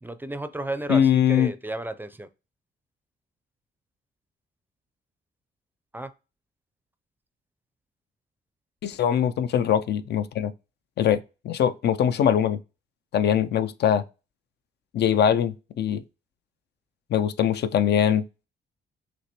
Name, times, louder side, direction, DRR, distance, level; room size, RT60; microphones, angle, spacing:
voice 1, 0.0-2.3 5.9-6.1, right 2 dB, 10° right, 0.4 m, -33 dB
voice 2, 0.9-1.5 8.8-10.5 11.0-11.2 11.4-12.6 13.1-14.0 14.9-16.0 17.1-18.2, left 9 dB, 60° left, 0.4 m, -22 dB
6.1 x 2.9 x 2.9 m
cardioid pair, 90°, 20 cm